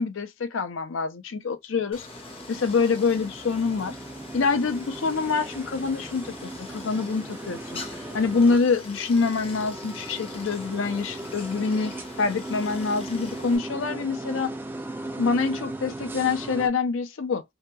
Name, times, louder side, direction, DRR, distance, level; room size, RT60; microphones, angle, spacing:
voice 1, 0.0-2.1 2.5-4.0 4.3-7.8 8.1-14.5 15.2-17.4, left 4 dB, 80° left, 0.5 m, -26 dB
Stream, 1.9-13.6, left 4 dB, 30° left, 0.6 m, -44 dB
sound 1, 2.1-16.7, right 2 dB, 10° right, 0.3 m, -38 dB
2.8 x 2.6 x 2.2 m
head